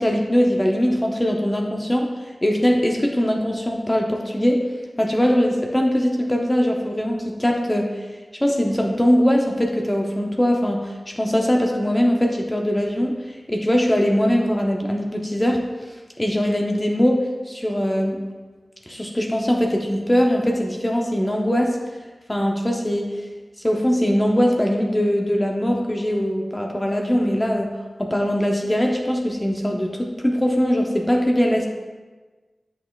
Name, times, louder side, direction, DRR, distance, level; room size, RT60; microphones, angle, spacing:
voice 1, 0.0-4.6 5.0-8.1 8.4-18.2 18.9-21.8 22.3-23.3 23.6-27.7 28.0-31.7, equal, 15° left, 1 dB, 0.6 m, -21 dB
8.2 x 5.9 x 2.3 m, 1.3 s
wide cardioid pair, 80°, 0 cm